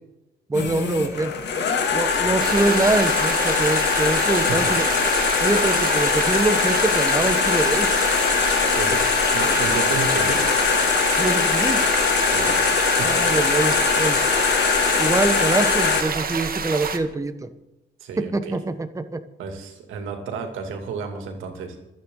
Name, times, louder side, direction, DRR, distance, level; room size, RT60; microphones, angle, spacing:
sound 1, 0.5-16.0, left 6 dB, 60° left, 2.5 m, -21 dB
voice 1, 0.5-1.3 1.9-4.9 5.4-8.0 11.2-11.8 13.0-14.2 15.0-17.5 18.2-19.2, right 2 dB, 15° right, 9 dB, 1.1 m, -24 dB
sound 2, 2.4-17.0, right 6 dB, 50° right, 1.5 m, -28 dB
voice 2, 4.3-4.7 8.7-9.0 9.3-10.4 12.2-12.5 12.9-13.4 18.0-18.5 19.4-21.8, right 5 dB, 90° right, 4 dB, 2.6 m, -32 dB
27.0 x 9.0 x 3.9 m, 0.98 s
cardioid pair, 90°, 20 cm